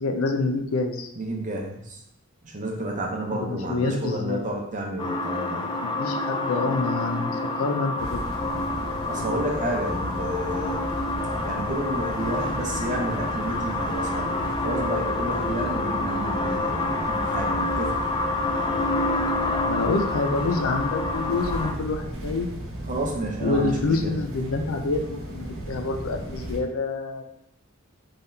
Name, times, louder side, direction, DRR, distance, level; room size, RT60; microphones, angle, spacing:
voice 1, 0.0-1.1 3.3-4.5 5.8-7.3 7.6-8.2 19.7-22.5 23.4-27.2, left 3 dB, 85° left, 5 dB, 0.5 m, -27 dB
voice 2, 1.2-2.0 2.4-5.7 9.1-10.9 11.4-18.0 22.9-24.2, right 1 dB, 35° right, 0 dB, 0.7 m, -31 dB
sound 1, 5.0-21.7, left 2 dB, 20° left, 0.4 m, -28 dB
sound 2, 8.0-26.6, right 1 dB, 80° right, 0.9 m, -35 dB
3.8 x 3.4 x 2.7 m, 0.78 s
head